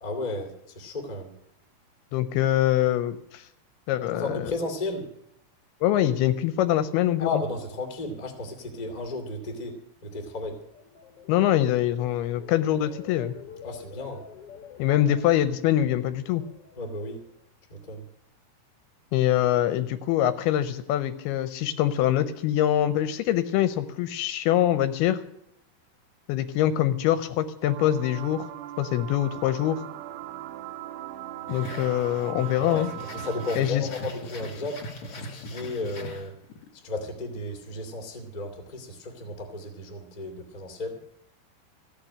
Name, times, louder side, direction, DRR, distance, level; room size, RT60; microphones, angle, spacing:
voice 1, 0.0-1.3 4.1-5.1 7.2-10.6 13.6-14.2 16.8-17.2 17.7-18.0 32.6-36.4 36.7-41.0, left 2 dB, 20° left, 3 dB, 1.2 m, -34 dB
voice 2, 2.1-3.5 3.9-4.4 5.8-7.4 11.3-13.3 14.8-16.4 19.1-25.2 26.3-28.5 28.8-29.8 31.5-32.9 33.6-33.9, left 12 dB, 80° left, 11 dB, 2.4 m, -24 dB
sound 1, 10.4-17.5 17.9-18.3, left 7 dB, 55° left, 1.7 m, -47 dB
sound 2, 27.6-33.6, right 13 dB, 80° right, 2.5 m, -39 dB
sound 3, 31.5-36.7, left 1 dB, 40° left, 2.7 m, -40 dB
15.0 x 6.7 x 9.8 m, 0.78 s
omnidirectional pair, 4.7 m